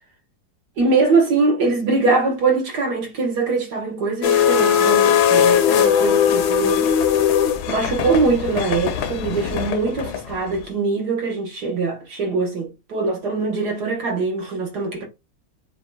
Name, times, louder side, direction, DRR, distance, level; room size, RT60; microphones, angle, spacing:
voice 1, 0.8-6.9 7.7-15.1, right 3 dB, 65° right, 2.0 m, -22 dB
sound 1, 4.2-10.6, left 9 dB, 70° left, 1.2 m, -19 dB
7.3 x 2.5 x 2.3 m
omnidirectional pair, 1.9 m